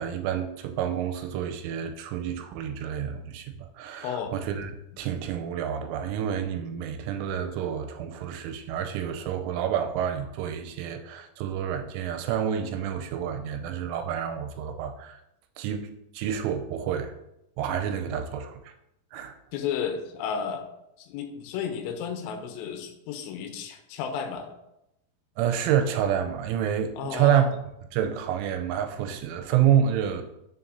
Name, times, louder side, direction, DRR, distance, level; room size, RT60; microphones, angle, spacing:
voice 1, 0.0-4.7 5.0-15.2 15.6-15.9 16.1-17.1 17.6-18.7 19.1-19.3 25.4-27.5 27.9-30.2, right 9 dB, 85° right, 6 dB, 3.0 m, -28 dB
voice 2, 4.0-4.3 19.5-20.7 21.0-24.6 27.0-27.5, left 7 dB, 85° left, 6 dB, 2.6 m, -33 dB
6.9 x 6.7 x 2.6 m, 0.85 s
omnidirectional pair, 5.7 m